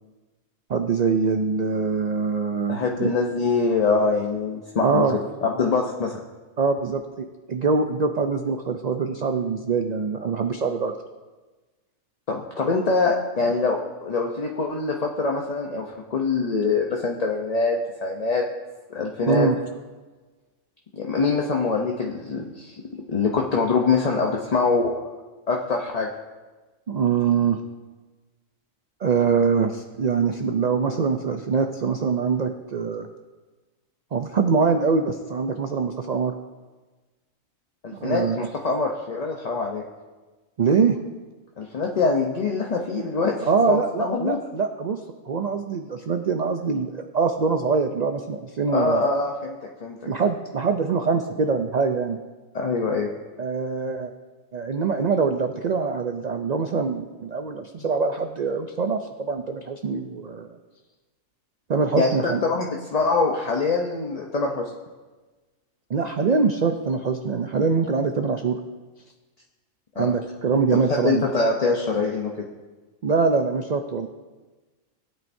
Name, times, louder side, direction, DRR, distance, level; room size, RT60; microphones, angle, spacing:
voice 1, 0.7-3.1 4.8-5.2 6.6-10.9 19.2-19.6 26.9-27.6 29.0-33.1 34.1-36.3 38.0-38.4 40.6-41.0 43.5-49.0 50.1-52.2 53.4-54.1 54.5-60.6 61.7-62.4 65.9-68.6 70.0-71.2 73.0-74.1, right 5 dB, 70° right, 6 dB, 0.4 m, -24 dB
voice 2, 2.7-6.2 12.3-15.9 16.1-18.4 18.9-19.5 20.9-24.9 25.5-26.1 37.8-39.8 41.6-44.4 48.7-50.0 52.5-53.1 61.9-64.7 70.0-70.1 70.9-72.3, left 4 dB, 40° left, 0 dB, 0.7 m, -24 dB
17.0 x 9.0 x 2.7 m, 1.3 s
omnidirectional pair, 1.4 m